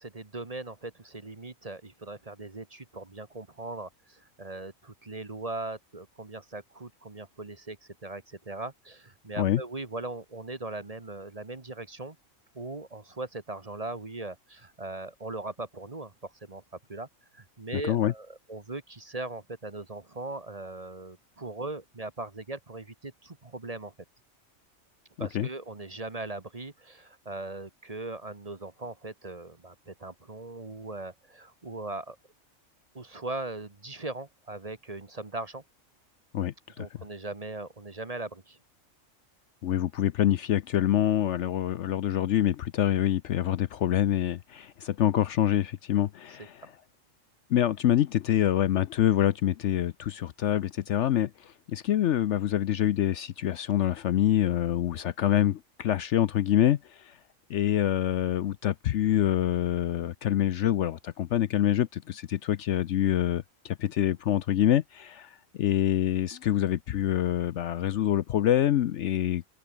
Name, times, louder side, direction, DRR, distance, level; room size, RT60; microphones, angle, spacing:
voice 1, 0.0-12.2 12.5-16.6 16.9-17.1 17.3-23.9 25.2-32.2 32.9-35.6 36.8-38.6 46.6-46.7, right 2 dB, 30° right, 1.5 m, -39 dB
voice 2, 25.2-25.5 36.3-36.9 39.6-46.6 47.5-57.1 57.5-69.4, left 11 dB, 65° left, 0.9 m, -26 dB
omnidirectional pair, 1.4 m